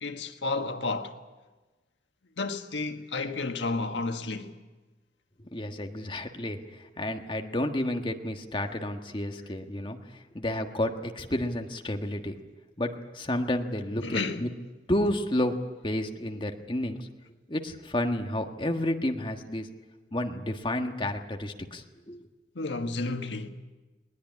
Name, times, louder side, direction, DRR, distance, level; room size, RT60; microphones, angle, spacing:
voice 1, 0.0-1.1 2.4-4.6 14.0-14.5 22.5-23.5, left 3 dB, 90° left, 1.5 m, -31 dB
voice 2, 5.5-6.6 7.0-10.0 10.3-12.4 12.8-14.5 14.9-15.5 15.8-17.1 17.5-19.7 20.1-22.3, left 1 dB, 30° left, 1.5 m, -31 dB
20.0 x 19.5 x 9.7 m
head